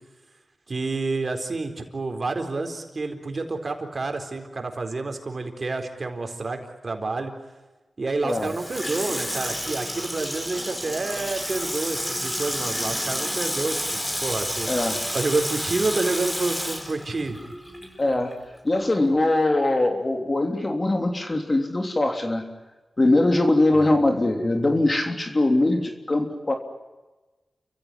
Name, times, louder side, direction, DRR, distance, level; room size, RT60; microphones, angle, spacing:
voice 1, 0.7-6.6 6.8-7.3 8.0-14.7 15.1-17.4 23.7-24.0, right 3 dB, 55° right, 5 dB, 4.2 m, -29 dB
Water tap faucet / Sink (filling or washing), 8.3-18.0 18.3-18.4, equal, 10° left, 5.8 m, -30 dB
voice 2, 14.7-15.0 18.0-18.4 18.6-22.4 23.0-26.5, left 2 dB, 35° left, 4 dB, 3.3 m, -22 dB
29.5 x 15.5 x 9.9 m, 1.2 s
cardioid pair, 45°, 0 cm